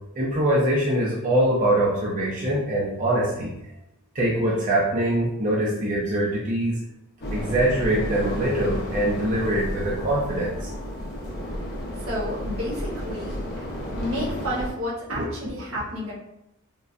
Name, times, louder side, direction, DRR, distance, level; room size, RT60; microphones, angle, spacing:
voice 1, 0.2-3.5 4.1-6.8 7.3-10.7 15.1-15.2, right 1 dB, 40° right, -5 dB, 0.6 m, -23 dB
sound 1, 7.2-14.7, equal, 50° left, 0.7 m, -32 dB
voice 2, 12.0-13.6 13.9-16.1, equal, 80° right, -6 dB, 1.2 m, -31 dB
3.8 x 2.1 x 2.4 m, 0.84 s
head